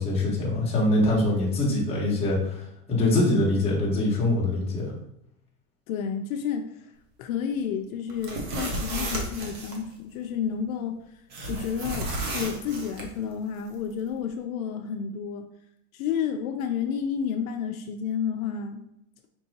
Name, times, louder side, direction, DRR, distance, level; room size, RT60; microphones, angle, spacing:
voice 1, 0.0-2.6 2.9-4.9, left 1 dB, 15° left, -5 dB, 0.9 m, -23 dB
voice 2, 5.9-6.7 7.2-10.9 11.5-12.1 12.3-15.4 15.9-18.8, left 7 dB, 70° left, 5 dB, 0.5 m, -30 dB
sound 1, 8.1-9.8 11.3-13.1, right 1 dB, 25° right, 0.4 m, -32 dB
4.5 x 2.7 x 2.8 m, 0.81 s
supercardioid pair, 150°, 44 cm